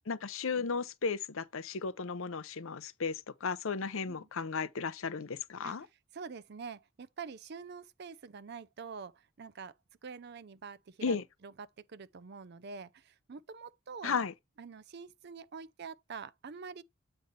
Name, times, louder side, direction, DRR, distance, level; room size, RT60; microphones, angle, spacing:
voice 1, 0.1-5.9 11.0-11.2 14.0-14.3, left 5 dB, 65° left, 0.6 m, -35 dB
voice 2, 6.1-9.7 10.0-11.5 11.9-14.2 14.6-16.8, right 5 dB, 50° right, 0.4 m, -46 dB
7.9 x 3.2 x 5.4 m
head